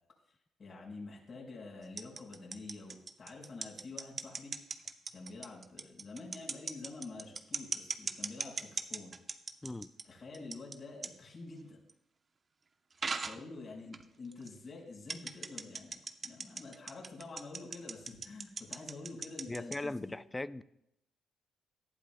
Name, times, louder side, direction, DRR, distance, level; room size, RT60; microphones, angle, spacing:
voice 1, 0.6-4.5 5.1-9.1 10.0-11.8 13.3-20.2, left 3 dB, 45° left, 4.7 m, -48 dB
sound 1, 1.8-10.0 10.3-10.8 11.0-11.1 11.9-12.0 13.0-13.4 13.9-14.0 14.3-14.5 15.1-19.8, right 4 dB, 40° right, 0.7 m, -38 dB
voice 2, 19.5-20.6, left 2 dB, 15° left, 0.4 m, -39 dB
18.0 x 12.0 x 2.2 m
cardioid pair, 90°, 0 cm